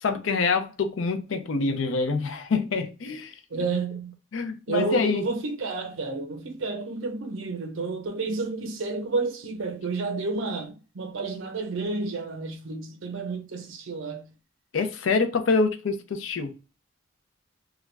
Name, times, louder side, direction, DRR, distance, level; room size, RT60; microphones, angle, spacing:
voice 1, 0.0-3.3 4.3-5.2 14.7-16.5, left 4 dB, 85° left, 0.5 m, -26 dB
voice 2, 3.5-4.2 4.7-14.2, right 3 dB, 90° right, 0.6 m, -31 dB
2.3 x 2.1 x 3.2 m
head